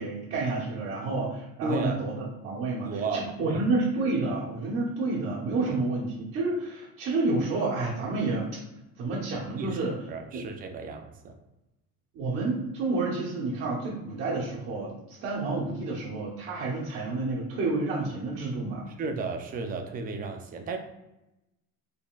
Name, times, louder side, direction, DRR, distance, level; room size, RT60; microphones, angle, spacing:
voice 1, 0.0-8.6 9.0-10.0 10.3-10.4 12.1-18.9, right 3 dB, 45° right, -7 dB, 1.0 m, -29 dB
voice 2, 1.6-2.0 2.8-3.6 5.6-5.7 9.6-9.8 10.1-11.4 19.0-20.8, right 3 dB, 30° right, 5 dB, 0.4 m, -33 dB
3.8 x 3.7 x 2.3 m, 0.94 s
cardioid pair, 160°, 30 cm